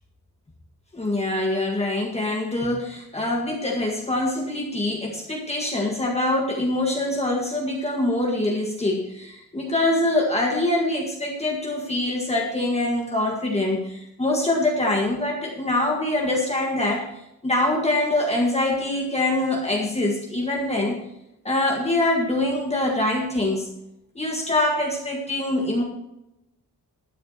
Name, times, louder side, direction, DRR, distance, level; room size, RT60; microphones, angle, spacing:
voice 1, 0.9-17.1 17.4-21.0 21.4-23.7 24.2-25.8, left 1 dB, 20° left, -1 dB, 1.8 m, -24 dB
12.0 x 10.5 x 4.3 m, 0.86 s
wide cardioid pair, 175°, 34 cm